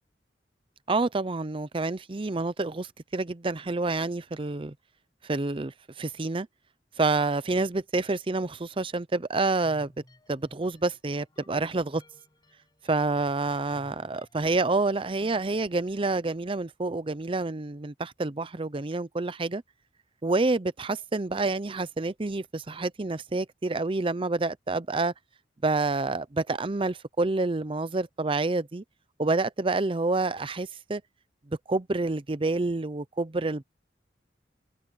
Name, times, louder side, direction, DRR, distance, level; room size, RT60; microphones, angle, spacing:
voice 1, 0.9-4.7 5.2-6.5 7.0-9.9 10.3-12.0 12.9-19.6 20.2-25.1 25.6-28.8 29.2-31.0 31.5-33.6, right 3 dB, 30° right, 0.6 m, -28 dB
sound 1, 9.4-16.3, left 1 dB, 25° left, 7.3 m, -58 dB
open air
head